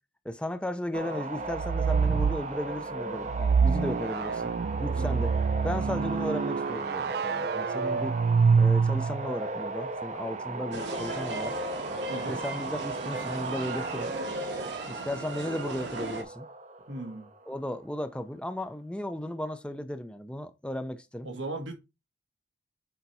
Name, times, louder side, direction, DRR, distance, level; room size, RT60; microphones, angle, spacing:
voice 1, 0.2-4.5 4.8-5.4 5.6-8.2 8.6-11.5 12.3-14.1 14.9-16.5 17.5-21.3, left 1 dB, 5° left, 0.6 m, -35 dB
sound 1, 0.9-17.7, right 2 dB, 40° right, 0.8 m, -36 dB
sound 2, 1.5-2.4 3.3-9.3, right 5 dB, 55° right, 0.3 m, -26 dB
sound 3, 10.7-16.2, right 3 dB, 70° right, 1.5 m, -37 dB
voice 2, 16.9-17.3 21.2-21.7, right 2 dB, 85° right, 1.7 m, -36 dB
6.9 x 4.5 x 4.2 m
head